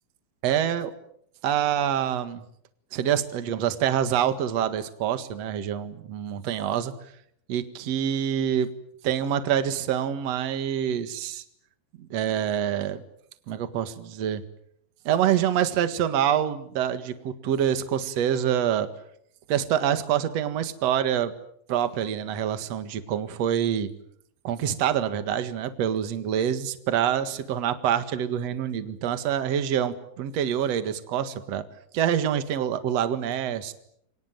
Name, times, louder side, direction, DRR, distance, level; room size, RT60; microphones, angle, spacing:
voice 1, 0.4-0.9 1.4-2.4 2.9-6.9 7.5-8.7 9.0-11.4 12.0-13.0 13.5-14.4 15.1-18.9 19.5-21.3 21.7-23.9 24.4-31.6 31.9-33.7, right 9 dB, 55° right, 10 dB, 2.0 m, -26 dB
29.5 x 24.0 x 7.8 m, 0.72 s
omnidirectional pair, 5.4 m